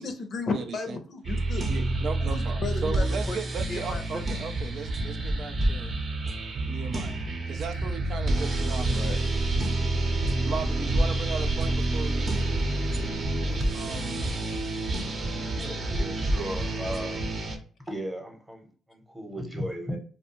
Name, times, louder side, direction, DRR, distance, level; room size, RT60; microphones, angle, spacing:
voice 1, 0.0-1.6 2.2-3.4 3.7-4.2 8.9-9.3, left 3 dB, 55° left, 0.6 m, -34 dB
voice 2, 0.5-1.0 1.7-5.9 6.6-7.2 7.5-9.1 10.5-12.4 13.7-14.3, right 5 dB, 65° right, 0.3 m, -36 dB
sound 1, 1.2-17.6, right 2 dB, 45° right, 0.7 m, -28 dB
sound 2, 9.0-14.0, right 1 dB, 90° left, 0.8 m, -39 dB
voice 3, 15.6-17.3 17.9-20.0, equal, 10° right, 0.8 m, -36 dB
2.4 x 2.2 x 2.8 m
cardioid pair, 90°, 0 cm